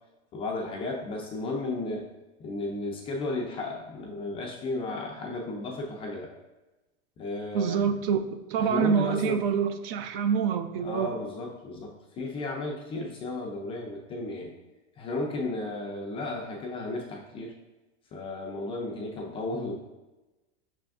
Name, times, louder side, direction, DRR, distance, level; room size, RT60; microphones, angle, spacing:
voice 1, 0.3-2.1 2.4-6.3 7.2-7.8 8.5-9.4 10.8-14.5 15.0-17.5 18.1-19.8, left 2 dB, 20° left, 0 dB, 0.3 m, -34 dB
voice 2, 7.5-8.2 8.5-11.1, right 7 dB, 60° right, 9 dB, 0.5 m, -26 dB
6.0 x 3.3 x 2.4 m, 1.1 s
supercardioid pair, 135°, 33 cm